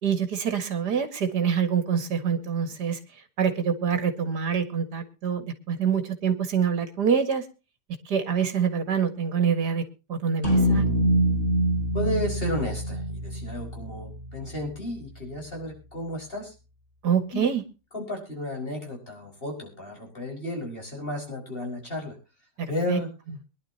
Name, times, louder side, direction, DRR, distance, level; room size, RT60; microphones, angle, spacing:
voice 1, 0.0-3.0 3.4-7.4 8.1-9.8 10.1-10.9 17.0-17.6 22.6-23.0, right 7 dB, 75° right, 9 dB, 2.4 m, -25 dB
sound 1, 10.4-14.9, right 1 dB, 40° right, 6.9 m, -25 dB
voice 2, 11.9-16.5 17.3-17.5 17.9-22.2 22.7-23.1, left 1 dB, 35° left, 1 dB, 5.5 m, -33 dB
23.0 x 11.5 x 2.8 m, 0.31 s
omnidirectional pair, 1.8 m